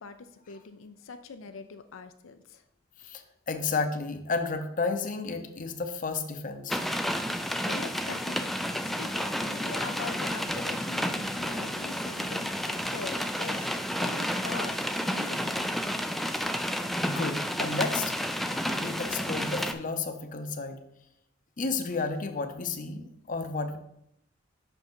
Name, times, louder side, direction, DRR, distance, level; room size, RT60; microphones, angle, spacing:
voice 1, 0.0-2.6 3.0-3.1 7.3-13.7 14.0-14.8 15.1-15.9, left 5 dB, 85° left, 8 dB, 0.5 m, -43 dB
voice 2, 3.0-6.8 17.0-18.1 18.5-20.8 21.6-23.8, left 4 dB, 40° left, 7 dB, 0.7 m, -32 dB
sound 1, 6.7-19.7, equal, ahead, 0.3 m, -31 dB
5.9 x 5.3 x 4.6 m, 0.77 s
head